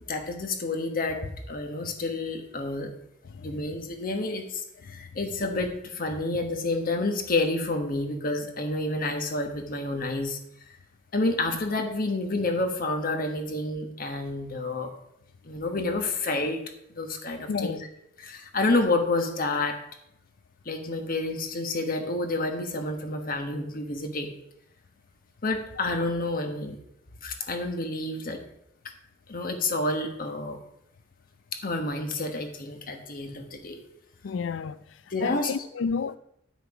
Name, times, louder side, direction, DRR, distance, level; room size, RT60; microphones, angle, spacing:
voice 1, 0.1-1.2 1.5-2.9 3.4-10.4 11.1-14.9 15.4-16.6 16.9-17.8 18.2-19.8 20.6-24.3 25.4-26.8 27.2-28.4 29.3-30.6 31.6-33.8 35.1-35.5, left 2 dB, 50° left, 1.3 m, -29 dB
voice 2, 3.3-3.7 4.9-5.0 17.5-17.8 34.2-34.8 35.2-36.2, left 5 dB, 80° left, 0.4 m, -31 dB
9.8 x 6.2 x 4.8 m
head